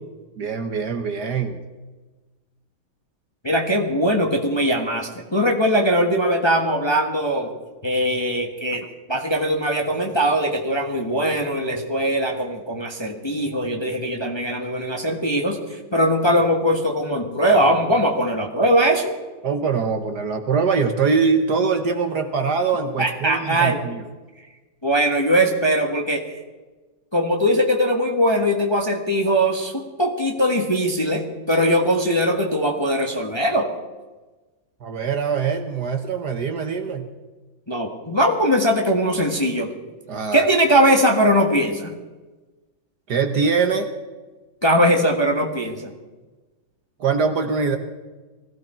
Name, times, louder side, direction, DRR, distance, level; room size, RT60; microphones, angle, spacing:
voice 1, 0.4-1.6 19.4-24.0 34.8-37.1 40.1-40.5 43.1-43.9 47.0-47.8, right 5 dB, 55° right, 7 dB, 1.4 m, -23 dB
voice 2, 3.4-7.5 7.8-8.8 9.1-19.1 23.0-23.8 24.8-26.2 27.1-33.7 37.7-39.7 40.3-41.9 44.6-45.9, equal, 15° left, 2 dB, 1.2 m, -20 dB
20.5 x 15.5 x 4.4 m, 1.2 s
omnidirectional pair, 2.3 m